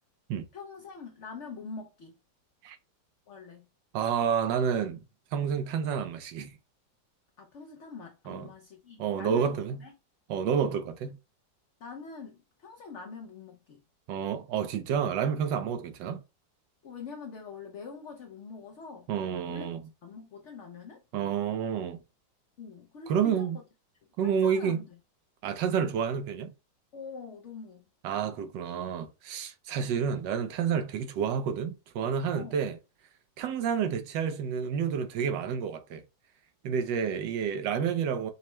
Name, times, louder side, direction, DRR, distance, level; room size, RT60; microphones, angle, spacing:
voice 1, 0.5-2.2 3.3-3.7 7.4-9.9 11.8-13.8 15.6-15.8 16.8-19.1 19.4-19.7 20.0-21.0 22.6-23.5 24.2-25.0 25.7-26.0 26.9-27.9 32.3-32.6, left 5 dB, 75° left, 0.6 m, -44 dB
voice 2, 3.9-5.0 5.3-6.5 8.3-8.5 9.0-9.8 10.3-11.2 14.1-16.2 19.1-19.8 21.1-22.0 23.1-23.6 24.2-24.8 25.4-26.5 28.0-32.8 33.4-36.0 36.6-38.3, right 7 dB, 80° right, 1.3 m, -29 dB
5.4 x 2.1 x 3.0 m
omnidirectional pair, 2.0 m